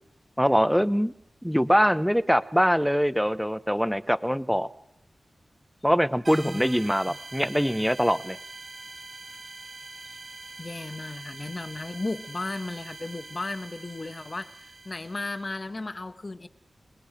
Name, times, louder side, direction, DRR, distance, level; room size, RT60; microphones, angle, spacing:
voice 1, 0.4-1.2 1.4-4.7 5.8-8.4, equal, ahead, 0.8 m, -23 dB
sound 1, 6.2-15.6, right 3 dB, 45° right, 0.8 m, -44 dB
voice 2, 10.6-16.5, left 2 dB, 40° left, 1.1 m, -35 dB
29.5 x 20.0 x 5.0 m
wide cardioid pair, 80°, 0 cm